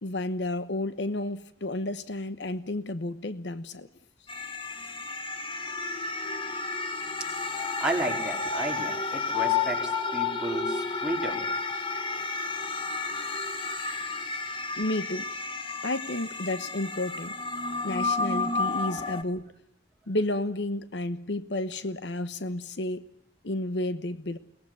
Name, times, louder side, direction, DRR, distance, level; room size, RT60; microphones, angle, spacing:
voice 1, 0.0-3.9 14.8-15.3 15.8-17.4 17.8-19.5 20.1-23.1 23.4-24.4, left 1 dB, 85° left, 13 dB, 1.1 m, -31 dB
sound 1, 4.3-19.2, left 4 dB, 30° left, 1.5 m, -31 dB
voice 2, 7.4-11.4, right 1 dB, 5° right, -1 dB, 4.4 m, -33 dB
23.0 x 19.0 x 9.3 m, 0.72 s
head